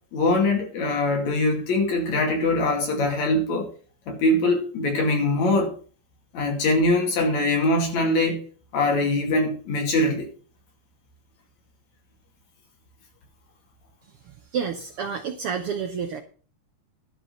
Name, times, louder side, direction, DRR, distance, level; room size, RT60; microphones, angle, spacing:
voice 1, 0.1-3.7 4.1-5.7 6.3-8.4 8.7-10.3, left 2 dB, 65° left, 3.7 m, -22 dB
voice 2, 14.5-16.2, right 6 dB, 65° right, 1.5 m, -29 dB
12.0 x 5.0 x 8.0 m
omnidirectional pair, 3.4 m